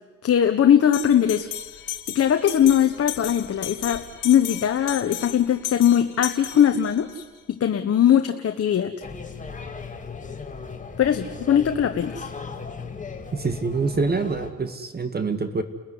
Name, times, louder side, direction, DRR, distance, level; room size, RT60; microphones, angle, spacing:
voice 1, 0.2-1.5 2.1-7.2 7.6-8.9 11.0-12.3, left 9 dB, 50° left, 6 dB, 1.3 m, -20 dB
Bell, 0.9-7.2, left 12 dB, 80° left, 2.2 m, -35 dB
sound 1, 9.0-14.5, left 5 dB, 25° left, 2.7 m, -37 dB
voice 2, 13.3-15.6, right 4 dB, 30° right, 9 dB, 1.9 m, -25 dB
30.0 x 14.5 x 9.7 m, 1.3 s
cardioid pair, 90°, 30 cm